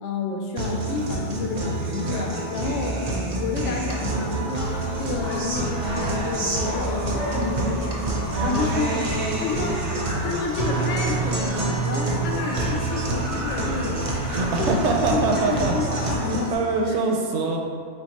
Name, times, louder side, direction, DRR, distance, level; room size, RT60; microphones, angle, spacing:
voice 1, 0.0-8.2 8.4-9.0 9.4-16.5 16.8-17.0, left 4 dB, 85° left, 1 dB, 0.9 m, -30 dB
Guitar, 0.6-16.5, right 2 dB, 50° right, 0.5 m, -27 dB
sound 1, 4.6-16.2, equal, 40° left, 1.0 m, -34 dB
voice 2, 8.3-8.8 14.3-15.7 16.2-17.6, right 3 dB, 80° right, 1 dB, 0.9 m, -24 dB
4.4 x 2.3 x 4.0 m, 2.1 s
omnidirectional pair, 1.2 m